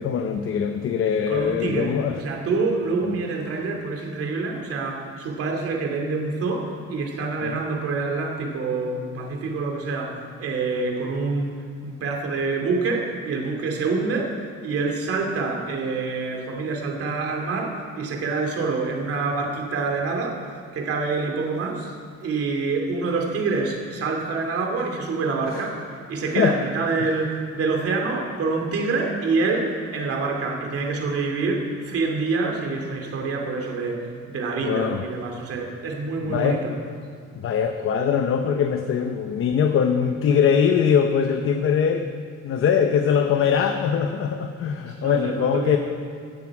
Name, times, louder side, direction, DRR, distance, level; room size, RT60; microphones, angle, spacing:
voice 1, 0.0-2.2 3.0-3.2 7.4-7.6 25.5-25.7 26.3-26.6 34.6-35.1 36.2-36.6 37.4-45.8, left 7 dB, 45° left, 6 dB, 0.8 m, -22 dB
voice 2, 1.3-11.5 11.8-14.3 14.6-21.9 22.2-25.8 26.1-36.7 44.9-45.8, right 3 dB, 50° right, 1 dB, 2.4 m, -26 dB
17.0 x 13.5 x 4.8 m, 2.2 s
cardioid pair, 170°, 29 cm